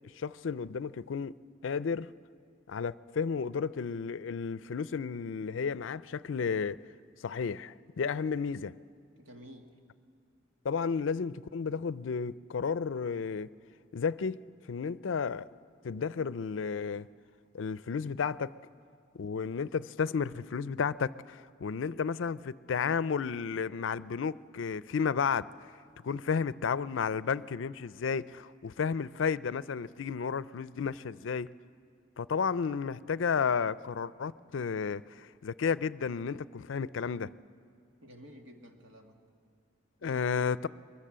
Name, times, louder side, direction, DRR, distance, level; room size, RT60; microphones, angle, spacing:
voice 1, 0.2-1.3 1.6-2.1 2.7-6.8 7.2-8.7 10.6-13.5 13.9-14.4 14.7-15.5 15.8-17.1 17.5-18.5 19.1-25.5 26.0-31.5 32.2-37.3 40.0-40.7, left 6 dB, 75° left, 0.4 m, -32 dB
voice 2, 9.2-9.8 38.0-39.2 40.0-40.3, equal, 80° right, 2.1 m, -52 dB
23.0 x 20.5 x 7.5 m
head